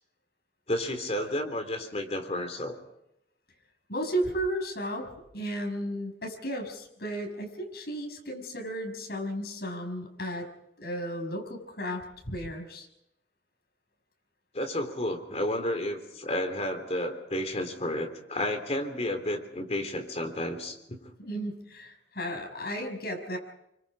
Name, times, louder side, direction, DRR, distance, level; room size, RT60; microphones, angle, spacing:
voice 1, 0.7-2.8 14.5-21.0, left 1 dB, 40° left, 5 dB, 3.5 m, -31 dB
voice 2, 3.9-5.1 5.3-10.5 10.8-12.9 21.2-23.4, equal, 65° left, 2 dB, 6.2 m, -34 dB
28.0 x 25.0 x 5.1 m, 0.83 s
head